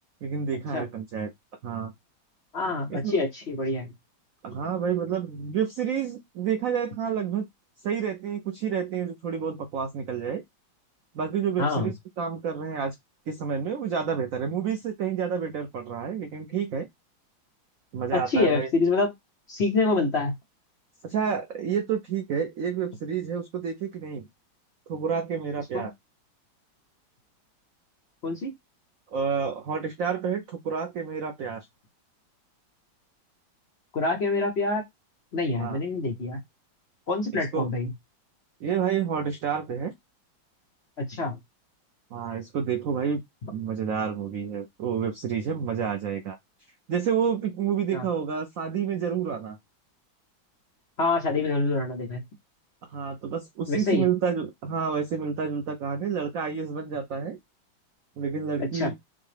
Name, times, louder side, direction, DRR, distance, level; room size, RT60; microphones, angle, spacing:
voice 1, 0.2-1.3 1.6-1.9 2.9-3.1 4.4-7.5 7.8-10.4 11.1-12.9 13.3-16.9 17.9-18.7 21.0-24.3 24.9-25.9 29.1-31.7 35.6-35.8 37.5-37.7 38.6-39.9 42.1-43.2 43.5-46.4 46.9-49.6 52.9-57.4 58.2-58.9, right 7 dB, 85° right, 0.7 m, -29 dB
voice 2, 2.5-3.9 11.6-11.9 18.1-19.1 19.5-20.3 25.7-25.9 28.2-28.5 33.9-34.8 35.3-36.4 37.1-37.9 41.1-41.4 47.9-48.0 51.0-52.2 53.7-54.1 58.7-58.9, left 3 dB, 60° left, 0.7 m, -26 dB
5.5 x 2.0 x 3.1 m
omnidirectional pair, 2.1 m